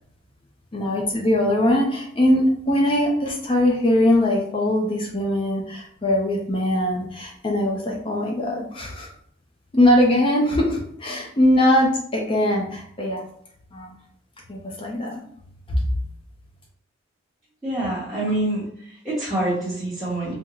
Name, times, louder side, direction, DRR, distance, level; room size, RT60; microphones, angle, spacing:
voice 1, 0.7-9.1 9.7-13.2 13.7-13.9 14.5-15.2 15.7-15.8, left 1 dB, 25° left, -1 dB, 0.5 m, -21 dB
voice 2, 17.6-20.3, right 1 dB, ahead, -12 dB, 0.9 m, -26 dB
3.6 x 2.1 x 3.0 m, 0.66 s
head